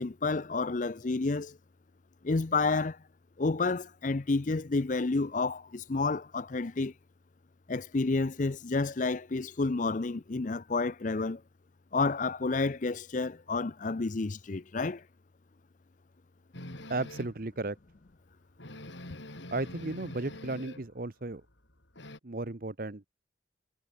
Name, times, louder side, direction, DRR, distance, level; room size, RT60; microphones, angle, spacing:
voice 1, 0.0-1.6 2.2-3.0 3.4-6.9 7.7-11.4 11.9-15.0, left 3 dB, 40° left, 0.6 m, -30 dB
sound 1, 16.5-17.5 17.9-18.0 18.3-18.4 18.6-20.9 21.2-22.2, left 1 dB, 70° left, 5.1 m, -45 dB
voice 2, 16.9-17.8 19.5-21.4 22.2-23.1, right 2 dB, 50° right, 1.0 m, -34 dB
head